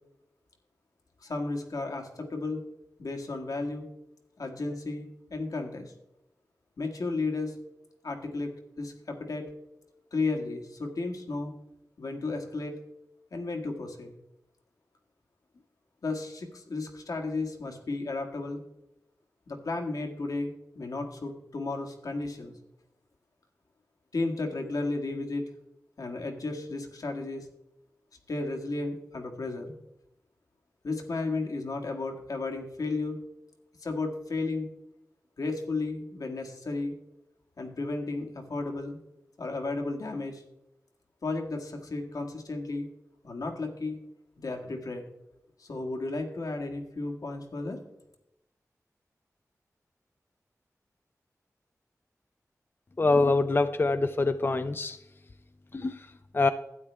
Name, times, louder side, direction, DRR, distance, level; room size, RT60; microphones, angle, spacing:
voice 1, 1.2-2.6 3.0-3.9 4.4-5.9 6.8-7.5 8.0-9.5 10.1-11.5 12.0-12.8 13.3-14.1 16.0-18.6 19.5-20.5 20.7-22.5 24.1-25.4 26.0-27.5 28.3-29.7 30.8-33.2 33.8-34.7 35.4-36.9 37.6-39.0 39.4-40.4 41.2-42.9 43.2-44.0 44.4-45.0 45.6-47.8, left 3 dB, 80° left, 2 dB, 1.7 m, -33 dB
voice 2, 53.0-55.0 55.7-55.9 56.3-56.5, left 3 dB, 40° left, 10 dB, 0.5 m, -24 dB
12.0 x 8.9 x 3.4 m, 0.86 s
wide cardioid pair, 65°, 6 cm